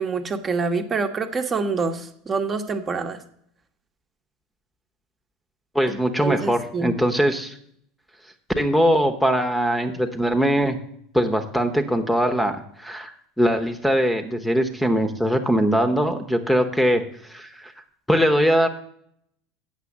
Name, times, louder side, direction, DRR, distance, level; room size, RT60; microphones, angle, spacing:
voice 1, 0.0-3.2 5.9-6.9, right 4 dB, 30° right, 5 dB, 1.1 m, -26 dB
voice 2, 5.7-7.6 8.6-10.8 11.1-12.5 12.8-13.1 13.4-17.0 17.3-17.7 18.1-18.7, equal, 5° left, 7 dB, 1.0 m, -21 dB
8.3 x 6.1 x 7.3 m, 0.66 s
supercardioid pair, 100°, 0 cm